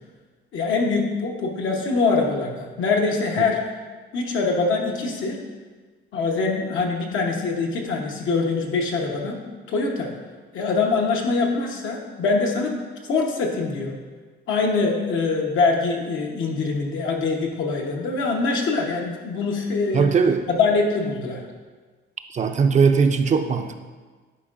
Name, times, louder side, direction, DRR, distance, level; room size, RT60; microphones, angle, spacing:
voice 1, 0.5-3.6 4.1-5.4 6.1-9.4 9.7-10.1 10.5-12.7 13.1-14.0 14.5-20.0 20.5-21.4, left 4 dB, 80° left, 0 dB, 1.1 m, -23 dB
voice 2, 19.9-20.4 22.3-23.8, right 5 dB, 35° right, 7 dB, 0.4 m, -19 dB
10.0 x 4.5 x 2.5 m, 1.4 s
cardioid pair, 90°, 20 cm